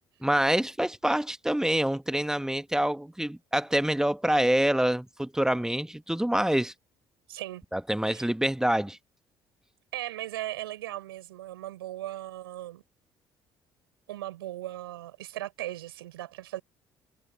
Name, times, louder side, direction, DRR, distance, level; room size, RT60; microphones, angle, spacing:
voice 1, 0.2-6.7 7.7-9.0, right 1 dB, 5° right, 1.6 m, -26 dB
voice 2, 7.3-7.6 8.1-8.3 9.9-12.8 14.1-16.6, right 14 dB, 75° right, 5.0 m, -38 dB
figure-of-eight pair, 50°, 13 cm